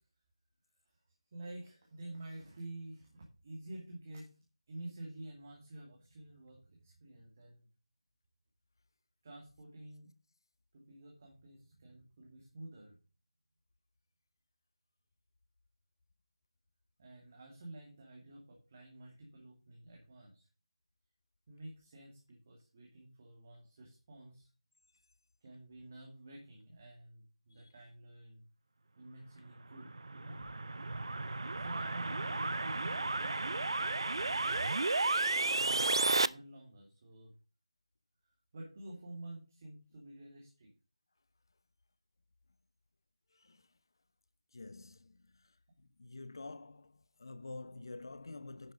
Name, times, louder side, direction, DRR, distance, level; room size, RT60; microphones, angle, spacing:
voice 1, 1.3-4.3 4.7-7.7 9.2-10.1 10.7-13.0 17.0-20.5 21.5-24.5 25.4-28.4 29.0-30.4 31.6-33.7 35.5-37.3 38.2-40.7, right 1 dB, 25° right, 2.6 m, -50 dB
sound 1, 29.7-36.3, right 3 dB, 55° right, 0.5 m, -33 dB
voice 2, 43.3-43.7 44.5-48.7, left 3 dB, 45° left, 0.8 m, -49 dB
10.5 x 6.3 x 5.1 m
figure-of-eight pair, 170°, 3 cm